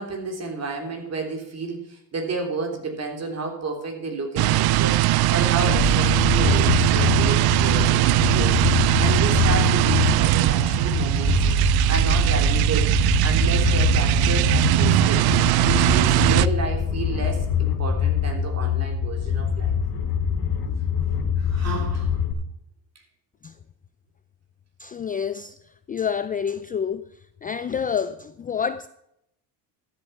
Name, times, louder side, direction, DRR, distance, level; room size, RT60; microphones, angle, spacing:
voice 1, 0.0-11.4 11.6-15.3 15.6-19.8 21.4-22.2, right 4 dB, 35° right, 3 dB, 3.4 m, -31 dB
sound 1, 4.4-16.5, right 16 dB, 60° right, 0.5 m, -20 dB
sound 2, 5.6-22.3, left 7 dB, 55° left, 2.5 m, -25 dB
voice 2, 24.8-25.5 25.9-27.0 27.4-28.9, left 7 dB, 20° left, 12 dB, 0.4 m, -27 dB
13.0 x 8.0 x 5.6 m, 0.78 s
cardioid pair, 115°, 42 cm